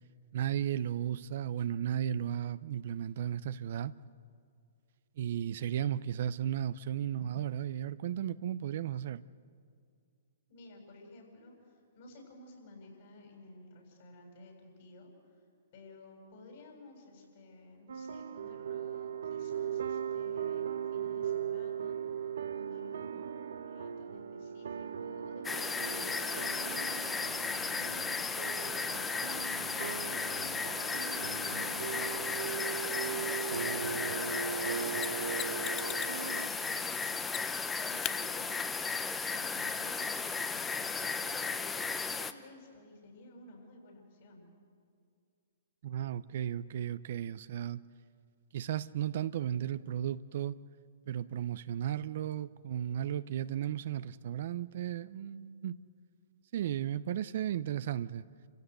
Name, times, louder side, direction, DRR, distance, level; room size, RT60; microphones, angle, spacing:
voice 1, 0.3-3.9 5.2-9.2 45.8-47.8 48.5-50.6 51.1-55.8 56.5-58.3, right 10 dB, 60° right, 15 dB, 0.6 m, -35 dB
voice 2, 10.5-15.1 15.7-22.0 22.5-27.1 27.4-38.5 39.3-44.5, left 2 dB, 60° left, 1 dB, 7.6 m, -54 dB
sound 1, 17.9-36.5, right 8 dB, 80° right, 1.2 m, -38 dB
sound 2, 25.4-42.3, left 4 dB, 15° left, 0.9 m, -35 dB
Mechanisms, 35.0-36.2 37.3-37.7 38.0-38.2 40.9-41.0, left 14 dB, 30° left, 0.5 m, -40 dB
28.5 x 16.0 x 8.0 m, 2.2 s
hypercardioid pair, 130°, 0 cm